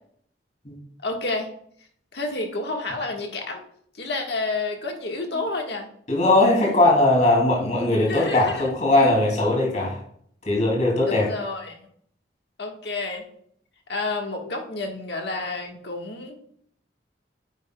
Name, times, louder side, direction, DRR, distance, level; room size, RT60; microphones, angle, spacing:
voice 1, 1.0-1.5 2.1-3.6 3.9-5.9 8.1-8.7 11.0-11.9 12.6-13.2 13.9-16.4, left 3 dB, 65° left, 2 dB, 1.5 m, -30 dB
voice 2, 6.1-10.0 10.5-11.3, left 2 dB, 40° left, -1 dB, 2.5 m, -19 dB
9.3 x 8.9 x 2.2 m, 0.65 s
head